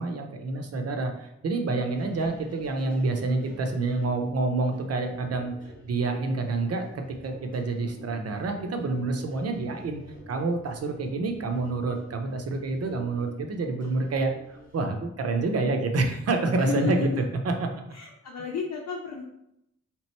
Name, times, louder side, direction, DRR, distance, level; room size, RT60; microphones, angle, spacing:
voice 1, 0.0-5.5 5.8-17.7, right 3 dB, 55° right, 4 dB, 0.7 m, -28 dB
sound 1, 1.8-14.9, equal, 30° left, 0.9 m, -50 dB
voice 2, 16.6-17.2 17.9-19.2, left 5 dB, 65° left, -2 dB, 0.7 m, -32 dB
3.7 x 3.0 x 4.4 m, 0.81 s
wide cardioid pair, 175°, 30 cm